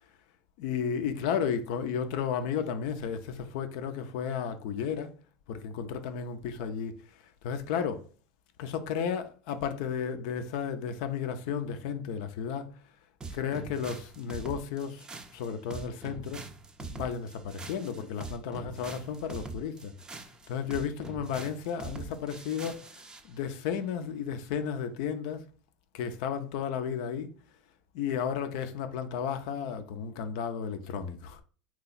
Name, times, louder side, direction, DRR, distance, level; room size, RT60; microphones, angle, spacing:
voice 1, 0.6-5.2 5.5-7.0 7.4-8.1 8.6-12.7 13.3-15.1 15.3-16.4 16.8-19.9 20.5-25.5 25.9-27.3 27.9-31.4, left 7 dB, 65° left, 0.5 m, -33 dB
sound 1, 13.2-23.3, right 4 dB, 20° right, 0.4 m, -43 dB
2.9 x 2.3 x 4.0 m
hypercardioid pair, 90°, 4 cm